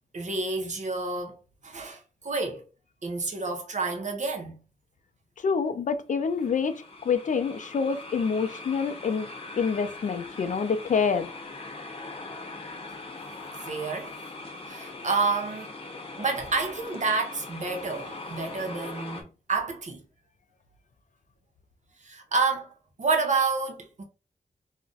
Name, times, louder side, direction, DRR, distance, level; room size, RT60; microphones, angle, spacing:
voice 1, 0.1-2.6 3.0-4.6 13.6-14.1 14.7-15.8 16.2-20.0 22.0-22.7 23.0-24.0, right 4 dB, 55° right, 0.7 m, -29 dB
voice 2, 5.4-9.3 9.6-11.3, left 5 dB, 60° left, 0.4 m, -27 dB
sound 1, 6.2-19.2, left 3 dB, 40° left, 0.8 m, -41 dB
2.4 x 2.1 x 3.8 m
cardioid pair, 65°, 15 cm